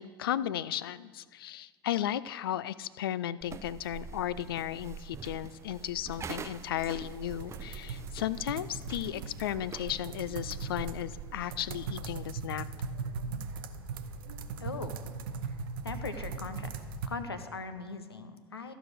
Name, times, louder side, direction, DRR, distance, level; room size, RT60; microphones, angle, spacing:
voice 1, 0.0-12.7, left 11 dB, 70° left, 18 dB, 0.4 m, -35 dB
sound 1, 3.4-12.3, right 6 dB, 20° right, 0.6 m, -45 dB
sound 2, 7.1-17.1, right 4 dB, 65° right, 0.8 m, -39 dB
voice 2, 14.6-14.9 15.5-15.6 15.8-16.7 17.1-18.7, left 4 dB, 85° left, 9 dB, 0.8 m, -40 dB
14.0 x 5.0 x 6.3 m, 1.5 s
figure-of-eight pair, 80°, 13 cm